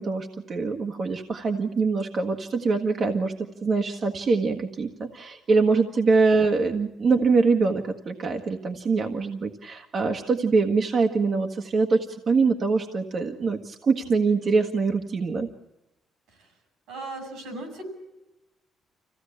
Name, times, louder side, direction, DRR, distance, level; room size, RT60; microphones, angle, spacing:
voice 1, 0.0-15.5, right 4 dB, 50° right, 3 dB, 1.6 m, -24 dB
voice 2, 16.9-17.8, right 2 dB, 85° right, 7 dB, 5.9 m, -38 dB
25.5 x 16.5 x 8.5 m, 0.96 s
cardioid pair, 90°, 0 cm